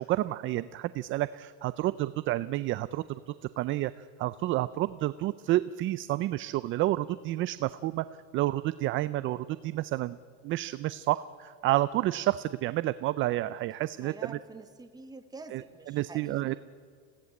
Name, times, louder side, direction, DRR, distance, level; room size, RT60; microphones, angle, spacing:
voice 1, 0.0-8.0 8.3-10.2 10.4-14.4 15.5-15.6 15.9-16.6, right 16 dB, 35° right, 16 dB, 0.4 m, -30 dB
voice 2, 13.9-16.6, right 3 dB, 10° right, 7 dB, 1.3 m, -47 dB
21.5 x 16.5 x 8.4 m, 2.2 s
cardioid pair, 145°, 34 cm